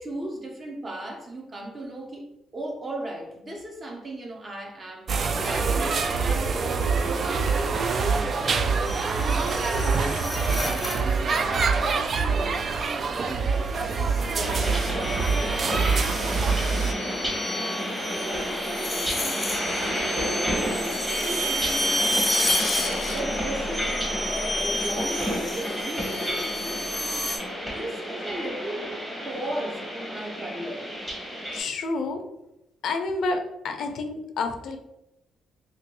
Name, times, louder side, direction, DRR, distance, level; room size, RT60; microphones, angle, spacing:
voice 1, 0.0-8.7 9.2-12.6 13.1-15.9 17.4-17.7 18.2-23.9 24.3-27.3 27.7-29.0 29.2-30.9, right 1 dB, 35° right, 1 dB, 0.8 m, -37 dB
sound 1, 5.1-16.9, right 4 dB, 50° right, 0.3 m, -25 dB
sound 2, 8.8-11.2 12.6-13.0 13.8-27.4, equal, 20° left, 0.6 m, -31 dB
sound 3, 14.4-31.6, equal, 15° right, 1.2 m, -31 dB
voice 2, 31.5-32.2 32.8-34.8, left 3 dB, 65° left, 5 dB, 0.5 m, -29 dB
3.0 x 3.0 x 2.9 m, 0.90 s
cardioid pair, 90°, 0 cm